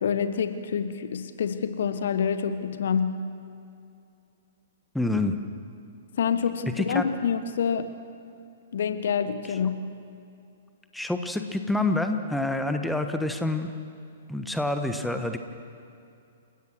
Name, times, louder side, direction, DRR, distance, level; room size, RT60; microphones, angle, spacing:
voice 1, 0.0-3.2 6.2-7.9 8.7-9.9, left 7 dB, 60° left, 11 dB, 1.2 m, -27 dB
voice 2, 4.9-5.3 6.8-7.0 10.9-13.7 14.3-15.4, left 2 dB, 5° left, 6 dB, 1.3 m, -27 dB
29.0 x 16.5 x 6.2 m, 2.6 s
figure-of-eight pair, 115°, 0 cm